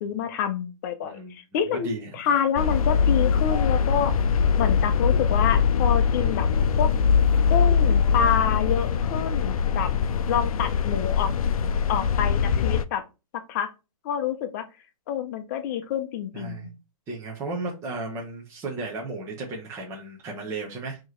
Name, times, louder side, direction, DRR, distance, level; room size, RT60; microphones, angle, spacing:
voice 1, 0.0-4.1 4.6-6.5 6.8-6.9 7.5-9.9 10.3-11.3 11.9-13.1 13.3-13.7 14.0-14.7 15.1-16.7, left 8 dB, 30° left, 9 dB, 0.7 m, -27 dB
voice 2, 1.7-2.1 16.3-16.7 17.1-21.0, right 2 dB, 15° right, -2 dB, 0.8 m, -34 dB
sound 1, 2.6-12.8, left 6 dB, 70° left, 0.5 m, -22 dB
4.5 x 3.0 x 3.1 m, 0.28 s
hypercardioid pair, 155°, 19 cm